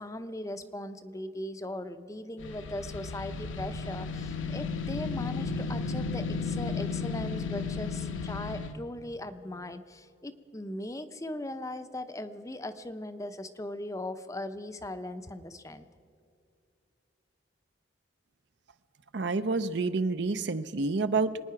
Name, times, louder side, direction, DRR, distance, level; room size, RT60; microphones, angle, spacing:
voice 1, 0.0-15.9, left 1 dB, 15° left, 10 dB, 0.6 m, -39 dB
sound 1, 2.4-8.7, left 4 dB, 80° left, 1.1 m, -34 dB
voice 2, 19.1-21.4, right 3 dB, 60° right, 12 dB, 0.6 m, -28 dB
25.0 x 9.8 x 5.8 m, 2.4 s
head